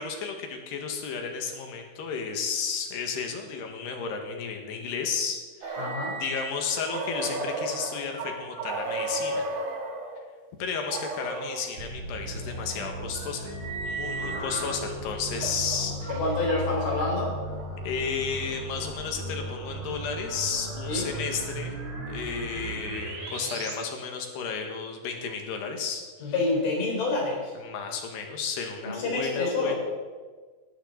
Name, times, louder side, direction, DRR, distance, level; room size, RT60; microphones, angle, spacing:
voice 1, 0.0-5.9 6.2-9.5 10.6-13.6 13.8-16.2 17.8-21.8 22.1-26.3 27.6-29.8, left 6 dB, 85° left, 3 dB, 3.9 m, -33 dB
sound 1, 5.6-10.2 10.9-11.6 12.4-14.8 15.3-17.7, right 2 dB, 85° right, 5.0 m, -35 dB
voice 2, 5.8-6.2 14.2-14.8 16.1-17.4 20.9-21.1 26.2-27.5 28.8-29.8, left 2 dB, 70° left, -1 dB, 6.0 m, -28 dB
sound 2, 11.8-23.7, right 1 dB, 45° right, 3.5 m, -36 dB
19.0 x 14.5 x 4.1 m, 1.4 s
omnidirectional pair, 4.6 m